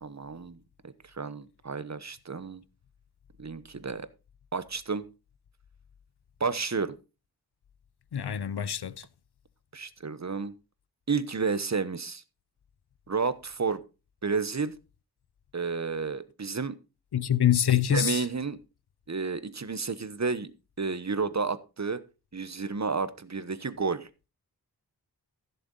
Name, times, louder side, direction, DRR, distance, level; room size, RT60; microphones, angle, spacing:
voice 1, 0.0-2.6 3.4-4.1 4.5-5.0 6.4-7.0 9.7-10.5 11.1-12.2 13.1-13.8 14.2-14.7 15.5-16.8 17.9-18.6 19.1-20.5 20.8-22.0 22.3-24.1, right 4 dB, 45° right, 1.1 m, -31 dB
voice 2, 8.1-9.0 17.1-18.2, left 10 dB, 85° left, 0.7 m, -25 dB
15.0 x 6.9 x 3.9 m
wide cardioid pair, 55°, 38 cm